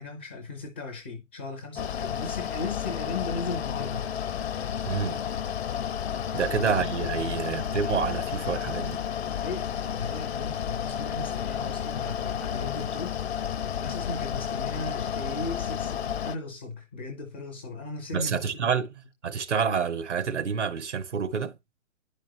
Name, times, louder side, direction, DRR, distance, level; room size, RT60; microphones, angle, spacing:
voice 1, 0.0-4.1 6.3-6.7 7.3-7.4 9.2-18.8, left 3 dB, 10° left, 0.4 m, -37 dB
Mechanical fan, 1.8-16.4, left 9 dB, 55° left, 0.6 m, -31 dB
voice 2, 4.8-5.2 6.3-9.0 18.1-18.9 19.2-21.6, right 6 dB, 65° right, 1.1 m, -28 dB
10.5 x 5.1 x 2.8 m
figure-of-eight pair, 125°, 38 cm